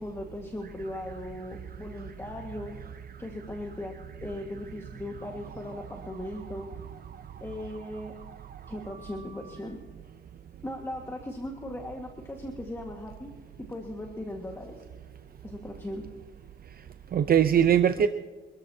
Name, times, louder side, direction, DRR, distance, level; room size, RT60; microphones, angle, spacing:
voice 1, 0.0-2.8 3.2-4.0 4.2-6.7 7.4-8.1 8.7-9.8 10.6-13.3 13.6-14.8 15.4-16.1, left 1 dB, 10° left, 2 dB, 1.7 m, -38 dB
voice 2, 8.9-9.5 17.1-18.1, right 9 dB, 50° right, 9 dB, 0.7 m, -23 dB
27.0 x 13.5 x 2.8 m, 1.3 s
cardioid pair, 90°, 20 cm